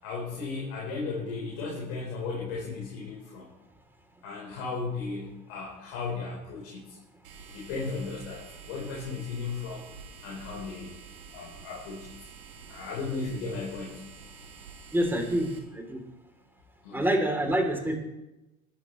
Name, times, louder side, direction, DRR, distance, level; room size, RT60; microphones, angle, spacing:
voice 1, 0.0-3.5 4.2-7.0 7.5-9.9 10.2-10.9 11.3-12.1 12.7-14.0 16.8-17.1, left 4 dB, 60° left, -4 dB, 4.5 m, -35 dB
sound 1, 7.2-15.6, right 6 dB, 80° right, 3.1 m, -48 dB
voice 2, 14.9-16.0 16.9-18.0, right 1 dB, 5° right, 2 dB, 3.4 m, -27 dB
21.5 x 12.0 x 3.3 m, 0.98 s
hypercardioid pair, 80°, 41 cm